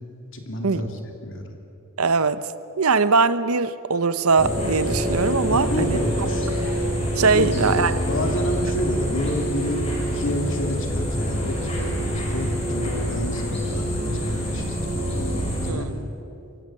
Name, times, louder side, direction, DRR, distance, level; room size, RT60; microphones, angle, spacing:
voice 1, 0.3-1.5 5.5-6.5 7.3-9.9 10.1-15.9, left 1 dB, 60° left, 3 dB, 2.9 m, -30 dB
voice 2, 2.0-2.4 2.8-6.0 7.2-8.0 15.7-16.0, right 4 dB, 90° right, 14 dB, 0.8 m, -21 dB
sound 1, 4.4-15.7, equal, 30° left, 5.7 m, -26 dB
24.0 x 16.0 x 7.7 m, 2.8 s
head